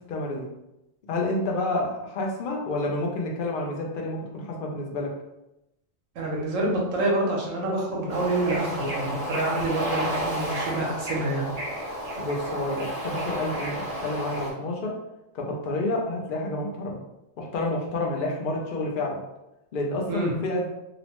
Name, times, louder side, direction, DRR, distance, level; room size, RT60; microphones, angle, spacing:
voice 1, 0.1-0.5 1.1-5.1 12.2-14.9 15.3-17.0 17.4-19.2 19.7-20.7, left 2 dB, 60° left, -1 dB, 0.6 m, -29 dB
voice 2, 6.2-11.5 20.1-20.3, right 2 dB, 75° right, -2 dB, 1.1 m, -27 dB
Bird / Ocean, 8.1-14.5, equal, 40° right, 0.6 m, -31 dB
2.9 x 2.1 x 2.9 m, 0.91 s
omnidirectional pair, 1.3 m